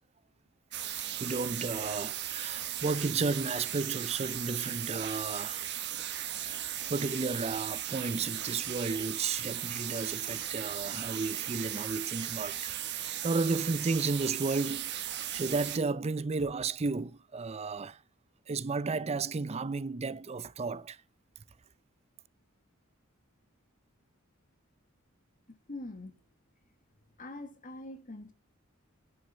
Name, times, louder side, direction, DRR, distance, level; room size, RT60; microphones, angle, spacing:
sound 1, 0.7-15.8, right 11 dB, 55° right, 1.3 m, -37 dB
voice 1, 1.2-5.6 6.4-18.0 18.5-21.0, right 4 dB, 30° right, 0.5 m, -33 dB
voice 2, 25.7-26.2 27.2-28.3, left 2 dB, 40° left, 1.5 m, -43 dB
10.5 x 6.4 x 5.5 m
head